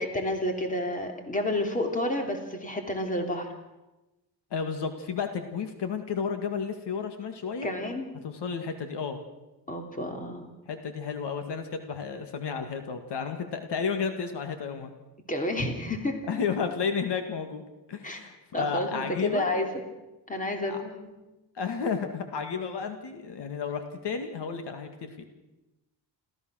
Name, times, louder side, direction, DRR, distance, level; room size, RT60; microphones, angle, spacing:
voice 1, 0.0-3.5 7.6-8.1 9.7-10.4 15.3-16.1 18.0-18.2 18.5-19.7 20.3-21.1, left 1 dB, 20° left, 4 dB, 3.0 m, -30 dB
voice 2, 4.5-7.7 8.2-9.2 10.7-14.9 16.3-17.6 17.9-19.5 20.6-20.8 21.6-25.2, left 6 dB, 70° left, 7 dB, 2.1 m, -32 dB
29.0 x 14.5 x 6.4 m, 1.0 s
wide cardioid pair, 150°, 42 cm